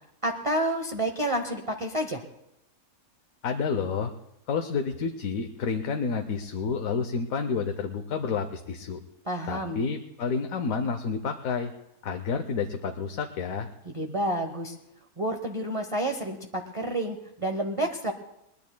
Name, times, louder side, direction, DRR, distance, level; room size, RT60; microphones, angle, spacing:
voice 1, 0.2-2.2 9.2-9.8 13.9-14.7 15.2-18.1, right 1 dB, 25° right, 4 dB, 0.8 m, -29 dB
voice 2, 3.4-4.1 4.5-9.0 9.5-11.7 12.0-13.7, left 5 dB, 70° left, 6 dB, 1.2 m, -29 dB
22.0 x 20.5 x 2.2 m, 0.85 s
omnidirectional pair, 1.6 m